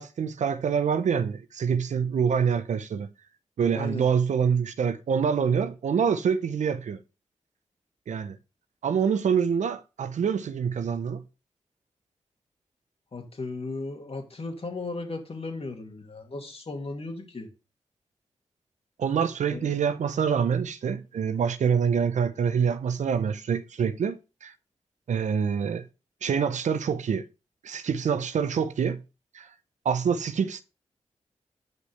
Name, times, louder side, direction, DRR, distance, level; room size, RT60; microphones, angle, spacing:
voice 1, 0.0-3.1 3.6-7.0 8.1-8.4 8.8-11.2 19.0-24.5 25.1-25.8 26.2-27.2 27.6-29.0 29.3-29.5 29.8-30.6, right 7 dB, 80° right, 0.7 m, -26 dB
voice 2, 3.7-4.1 13.1-17.5 19.5-19.7, left 3 dB, 55° left, 2.3 m, -36 dB
7.6 x 5.3 x 3.3 m
cardioid pair, 40°, 12 cm